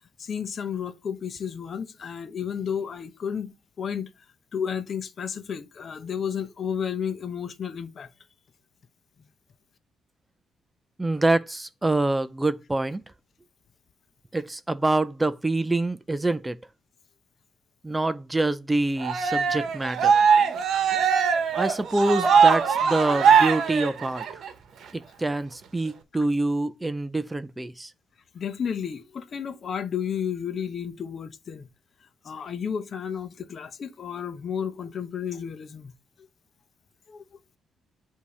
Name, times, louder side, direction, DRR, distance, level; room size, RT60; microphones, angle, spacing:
voice 1, 0.2-4.1 4.5-8.1 21.2-21.3 28.3-31.7 32.2-35.9 37.1-37.2, left 7 dB, 50° left, 0.7 m, -32 dB
voice 2, 11.0-13.0 14.3-16.6 17.8-20.1 21.5-24.4 24.9-27.9, right 2 dB, 15° right, 0.4 m, -26 dB
Cheering, 19.0-24.5, right 6 dB, 65° right, 1.0 m, -21 dB
8.2 x 2.8 x 4.8 m
cardioid pair, 90°, 0 cm